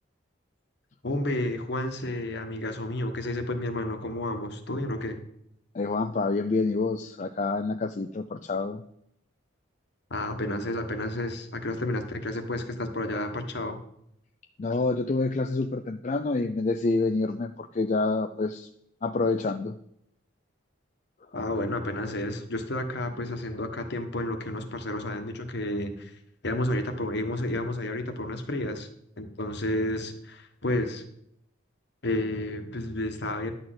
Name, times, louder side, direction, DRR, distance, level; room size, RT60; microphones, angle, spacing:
voice 1, 1.0-5.2 10.1-13.8 21.3-28.9 29.2-31.0 32.0-33.5, left 1 dB, 55° left, 5 dB, 1.2 m, -31 dB
voice 2, 5.7-8.8 14.6-18.7 19.0-19.8, left 3 dB, 35° left, 7 dB, 0.4 m, -27 dB
11.0 x 4.3 x 7.8 m, 0.73 s
head